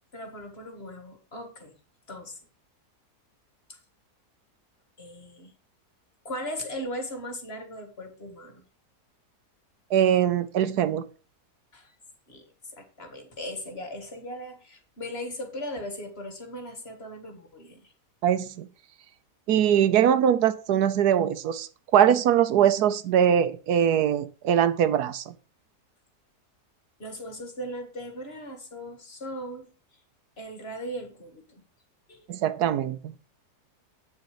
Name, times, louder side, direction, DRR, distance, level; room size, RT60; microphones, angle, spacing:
voice 1, 0.1-1.7 2.1-2.4 3.7-3.8 5.0-5.5 6.3-8.6 11.7-12.0 12.3-12.5 12.7-17.9 27.0-29.7 30.4-31.6 32.1-32.3, equal, 40° left, 1.9 m, -38 dB
voice 2, 9.9-11.0 18.2-18.7 19.5-25.3 32.3-33.1, right 9 dB, 80° right, 1.3 m, -22 dB
8.5 x 6.5 x 4.9 m
omnidirectional pair, 1.7 m